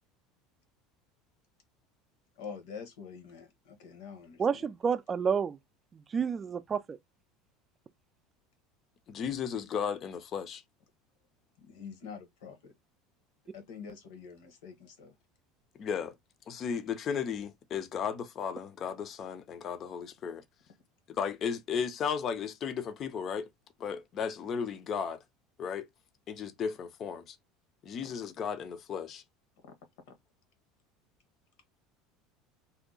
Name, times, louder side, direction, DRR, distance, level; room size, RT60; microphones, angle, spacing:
voice 1, 2.4-4.7 11.6-12.7 13.5-15.1 29.6-29.7, left 6 dB, 80° left, 1.1 m, -46 dB
voice 2, 4.4-5.6 5.9-7.0, right 6 dB, 30° right, 0.3 m, -30 dB
voice 3, 9.1-10.6 15.8-16.2 16.5-20.4 21.1-23.5 23.8-25.2 25.6-25.9 26.3-27.4 27.8-29.2, left 7 dB, 40° left, 0.5 m, -35 dB
2.8 x 2.2 x 3.8 m
supercardioid pair, 110°, 0 cm